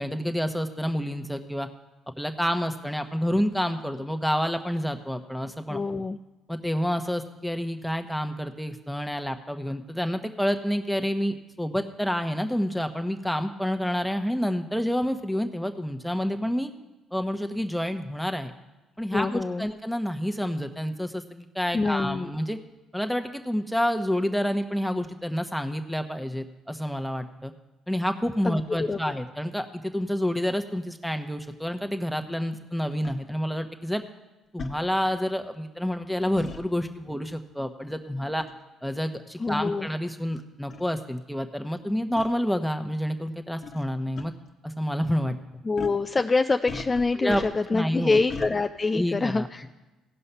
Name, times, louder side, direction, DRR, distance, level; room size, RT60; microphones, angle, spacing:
voice 1, 0.0-1.7 2.2-5.8 6.5-16.7 17.1-18.5 19.0-22.6 22.9-27.5 27.9-34.0 34.5-38.4 38.8-44.3 44.6-45.3 47.2-47.4 47.7-48.2 48.9-49.7, equal, ahead, 6 dB, 1.1 m, -28 dB
voice 2, 5.7-6.2 19.1-19.7 21.7-22.3 28.4-29.0 39.4-39.9 45.6-49.7, left 3 dB, 30° left, 7 dB, 0.4 m, -26 dB
sound 1, 33.0-33.2 34.6-34.8 36.4-36.6 38.4-38.6 39.4-39.5 40.3-40.4 40.7-40.8 42.2-42.3 43.6-43.8 44.2-44.3 45.8-46.0 46.7-47.8 48.3-48.5, left 4 dB, 50° left, 1.1 m, -37 dB
16.0 x 5.5 x 5.6 m, 1.1 s
hypercardioid pair, 60°, 0 cm